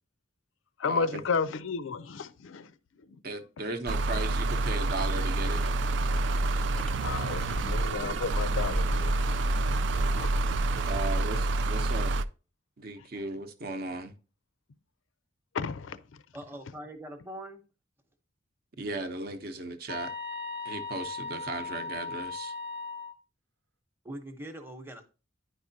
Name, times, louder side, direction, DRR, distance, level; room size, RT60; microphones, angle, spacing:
voice 1, 0.8-2.7 7.0-9.4 10.2-10.4 15.5-16.0, left 5 dB, 85° left, 0.4 m, -32 dB
voice 2, 3.2-5.6 10.9-12.1 12.8-14.1 18.8-20.1 20.6-22.5, right 2 dB, 50° right, 0.7 m, -36 dB
sound 1, 3.9-12.2, right 2 dB, 65° right, 0.4 m, -28 dB
sound 2, 5.3-11.4, equal, 5° left, 0.3 m, -36 dB
voice 3, 16.3-17.6 24.0-25.0, right 1 dB, 10° right, 0.8 m, -42 dB
sound 3, 19.9-23.1, left 3 dB, 85° right, 1.0 m, -37 dB
9.9 x 4.8 x 2.7 m
head